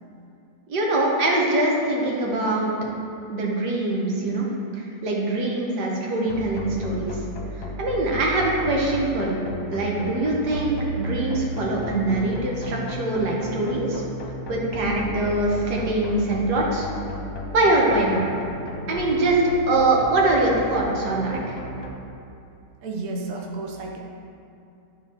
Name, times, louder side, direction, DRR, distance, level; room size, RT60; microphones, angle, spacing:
voice 1, 0.7-2.7 3.3-4.5 4.8-7.1 7.8-9.4 9.7-14.0 14.5-16.9 17.5-18.2 18.9-19.4 19.7-21.6, right 2 dB, 90° right, -2 dB, 1.6 m, -23 dB
sound 1, 6.3-21.9, left 1 dB, 60° left, 1.2 m, -34 dB
voice 2, 22.8-24.0, right 3 dB, 65° right, 0 dB, 1.1 m, -32 dB
11.0 x 4.3 x 2.8 m, 2.7 s
omnidirectional pair, 1.7 m